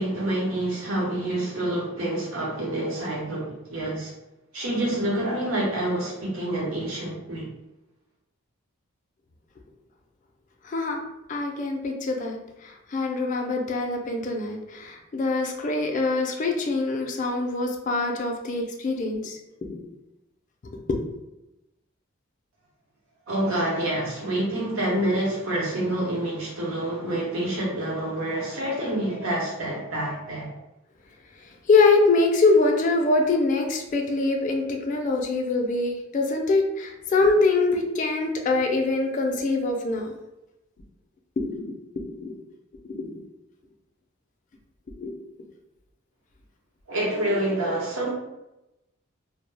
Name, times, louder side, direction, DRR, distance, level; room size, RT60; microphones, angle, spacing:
voice 1, 0.0-4.1 4.5-7.5 23.3-30.5 46.9-48.1, right 1 dB, 80° right, -4 dB, 0.9 m, -27 dB
voice 2, 10.6-11.0 11.3-19.4 19.7-19.9 20.9-21.2 31.4-40.2 41.4-42.4 42.9-43.2 45.0-45.2, left 3 dB, 35° left, 2 dB, 0.3 m, -24 dB
2.3 x 2.0 x 3.2 m, 0.94 s
head